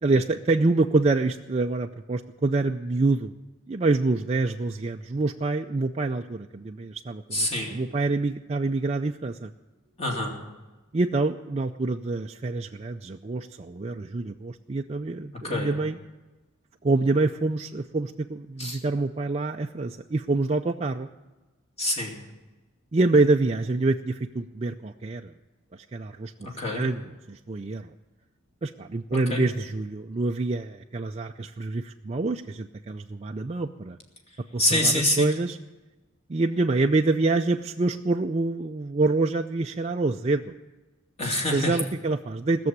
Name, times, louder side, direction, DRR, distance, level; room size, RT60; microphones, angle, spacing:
voice 1, 0.0-3.3 3.7-9.5 10.9-16.0 16.8-21.1 22.9-25.3 25.7-27.0 27.3-27.9 28.6-34.0 34.5-35.6 36.3-40.6 41.5-42.7, right 3 dB, 30° right, 3 dB, 0.4 m, -26 dB
voice 2, 7.3-7.8 10.0-10.3 15.4-15.7 18.6-18.8 21.8-22.1 26.6-26.8 29.3-29.4 34.6-35.3 41.2-41.7, left 1 dB, 30° left, 0 dB, 2.4 m, -25 dB
18.5 x 7.0 x 9.5 m, 1.1 s
head